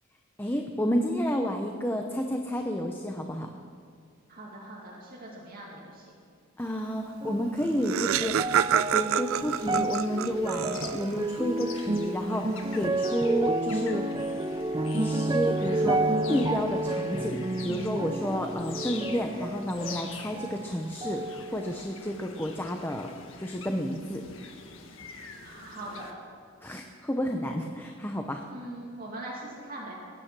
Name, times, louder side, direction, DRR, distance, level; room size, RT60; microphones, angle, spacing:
voice 1, 0.4-3.5 6.6-8.5 8.9-14.2 14.9-23.1 23.4-24.2 26.6-28.4, equal, 10° left, 3 dB, 0.8 m, -31 dB
voice 2, 4.3-6.1 25.4-26.1 28.5-29.9, right 1 dB, 45° right, -5 dB, 2.5 m, -41 dB
sound 1, 7.2-20.7 21.0-22.0 22.6-22.7, right 2 dB, 20° right, 0.5 m, -31 dB
Laughter, 7.3-7.4 7.6-11.2, right 9 dB, 85° right, 0.4 m, -28 dB
sound 2, 9.5-26.1, left 5 dB, 70° left, 1.7 m, -46 dB
22.0 x 9.6 x 6.1 m, 2.2 s
head